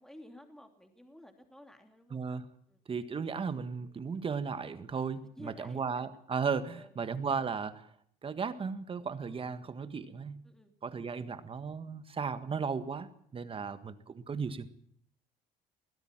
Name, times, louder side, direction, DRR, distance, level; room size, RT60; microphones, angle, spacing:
voice 1, 0.0-2.2 2.7-2.8 5.4-6.1 6.7-7.3 10.4-10.7, left 1 dB, 5° left, 5 dB, 3.0 m, -54 dB
voice 2, 2.1-2.4 2.9-7.9 8.2-10.5 10.8-14.7, right 5 dB, 30° right, 11 dB, 1.7 m, -35 dB
22.5 x 15.5 x 7.5 m, 0.65 s
cardioid pair, 110°, 17 cm